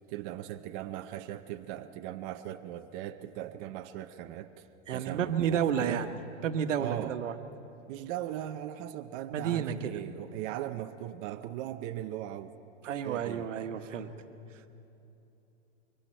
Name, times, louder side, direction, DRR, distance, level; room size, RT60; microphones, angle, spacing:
voice 1, 0.1-6.1 6.8-7.2 7.9-12.5 13.0-13.5, right 13 dB, 40° right, 8 dB, 0.7 m, -39 dB
voice 2, 4.9-7.3 9.3-9.9 12.8-14.1, right 8 dB, 80° right, 8 dB, 1.3 m, -31 dB
25.0 x 24.0 x 4.5 m, 2.9 s
hypercardioid pair, 135°, 36 cm